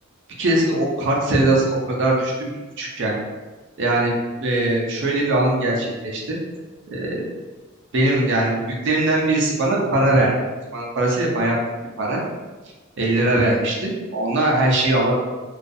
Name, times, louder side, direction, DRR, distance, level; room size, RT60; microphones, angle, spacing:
voice 1, 0.4-2.5 2.8-3.2 3.8-4.1 4.4-6.4 6.9-7.2 7.9-10.3 10.7-11.6 12.0-12.2 13.0-15.2, right 2 dB, 55° right, -2 dB, 0.5 m, -20 dB
2.3 x 2.3 x 2.6 m, 1.3 s
head